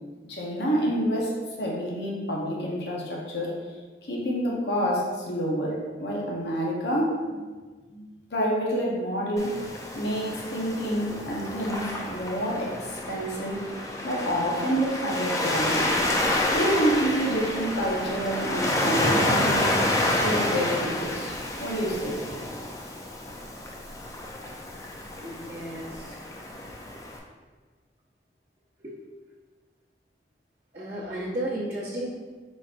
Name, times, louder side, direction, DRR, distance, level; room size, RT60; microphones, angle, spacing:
voice 1, 0.3-3.5 4.0-7.5 7.9-9.5 9.9-13.6 14.0-15.9 16.5-19.8 20.1-21.3 21.6-22.2, equal, 75° left, -3 dB, 0.9 m, -28 dB
Waves surf, 9.4-27.2, left 1 dB, 20° left, 0.4 m, -29 dB
voice 2, 25.2-26.2 28.8-29.0 30.7-32.2, right 1 dB, 40° right, -10 dB, 0.9 m, -33 dB
5.0 x 4.1 x 2.5 m, 1.4 s
head